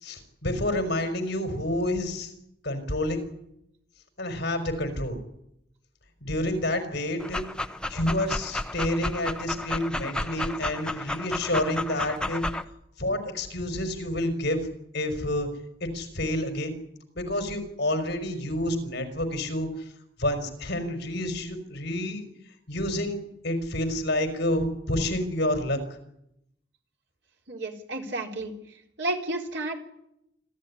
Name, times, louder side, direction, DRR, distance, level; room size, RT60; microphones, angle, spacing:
voice 1, 0.0-2.3 2.6-3.2 4.2-5.2 6.2-7.4 7.9-12.4 13.0-14.7 14.9-15.5 15.8-16.8 17.1-19.7 20.2-22.3 22.7-25.8, left 1 dB, 65° left, 7 dB, 5.0 m, -29 dB
Dog, 7.2-12.6, left 1 dB, 5° left, 0.9 m, -32 dB
voice 2, 27.5-28.5 29.0-29.8, right 2 dB, 75° right, 3 dB, 3.8 m, -31 dB
26.0 x 14.0 x 10.0 m, 0.79 s
head